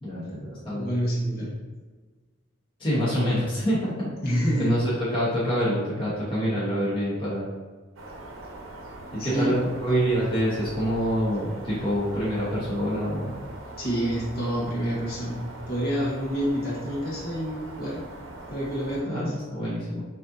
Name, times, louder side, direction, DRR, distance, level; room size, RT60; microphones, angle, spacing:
voice 1, 0.0-0.9 2.8-4.1 4.6-7.5 9.2-13.4 19.0-20.0, equal, 25° left, -9 dB, 1.0 m, -26 dB
voice 2, 0.7-1.5 4.2-4.7 9.2-9.5 13.8-15.4 15.7-18.0 18.5-19.3, equal, 45° left, -6 dB, 1.2 m, -27 dB
sound 1, 8.0-19.0, right 1 dB, 70° right, 0.8 m, -41 dB
6.2 x 2.8 x 2.6 m, 1.4 s
head